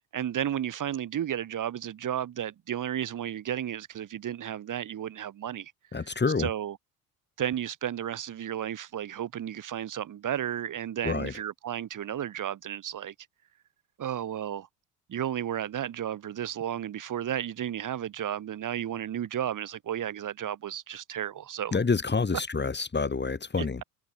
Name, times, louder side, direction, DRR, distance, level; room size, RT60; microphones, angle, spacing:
voice 1, 0.1-5.7 6.0-6.1 6.4-6.8 7.4-13.1 14.0-14.7 15.1-21.8 23.6-23.8, right 10 dB, 45° right, 4.8 m, -33 dB
voice 2, 5.9-6.5 11.0-11.3 21.7-23.8, left 4 dB, 25° left, 7.1 m, -27 dB
hypercardioid pair, 60°, 43 cm